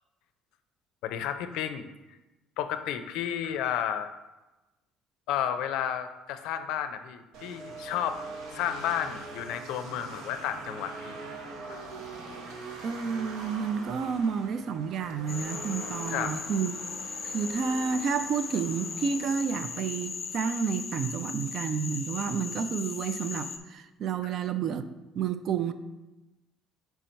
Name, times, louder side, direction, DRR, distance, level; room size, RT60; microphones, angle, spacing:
voice 1, 1.0-1.9 2.6-4.1 5.3-8.2 8.5-11.2 11.7-11.8 16.1-16.4, left 10 dB, 80° left, 0.4 m, -32 dB
sound 1, 7.3-20.4, right 3 dB, 90° right, 0.8 m, -43 dB
voice 2, 12.8-16.7 17.3-24.9 25.2-25.7, right 6 dB, 50° right, 0.3 m, -30 dB
Frog, 15.3-23.6, left 5 dB, 25° left, 0.5 m, -38 dB
4.6 x 4.4 x 5.2 m
cardioid pair, 140°, 0 cm